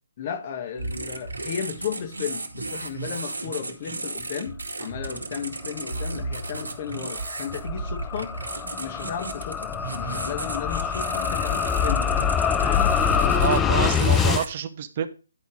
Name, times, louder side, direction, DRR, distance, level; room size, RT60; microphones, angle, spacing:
voice 1, 0.2-8.3 8.8-12.1 12.6-13.6, left 8 dB, 35° left, 1.4 m, -34 dB
sound 1, 0.8-14.5, right 3 dB, 85° right, 2.0 m, -34 dB
sound 2, 6.6-14.4, left 8 dB, 10° left, 0.4 m, -25 dB
voice 2, 13.3-15.1, right 8 dB, 40° right, 0.9 m, -27 dB
10.5 x 4.6 x 5.0 m
figure-of-eight pair, 145°, 0 cm